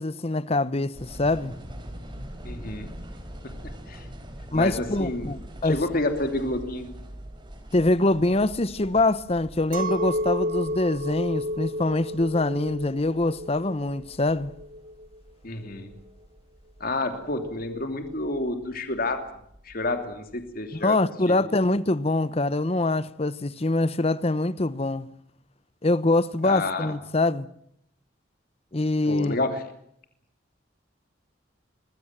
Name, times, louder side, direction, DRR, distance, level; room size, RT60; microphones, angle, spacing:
voice 1, 0.0-1.5 4.5-5.8 7.7-14.5 20.7-25.1 25.8-27.5 28.7-29.4, left 2 dB, 30° left, 0.9 m, -24 dB
sound 1, 0.9-20.6, equal, 25° right, 4.1 m, -44 dB
voice 2, 2.4-2.9 3.9-4.1 4.5-5.3 5.6-6.9 15.4-15.9 16.8-19.2 19.6-21.0 21.3-21.4 26.4-26.9 29.1-29.6, left 2 dB, 50° left, 2.9 m, -29 dB
Chink clink, 9.7-15.2, equal, 45° right, 1.0 m, -31 dB
25.0 x 20.5 x 7.4 m
head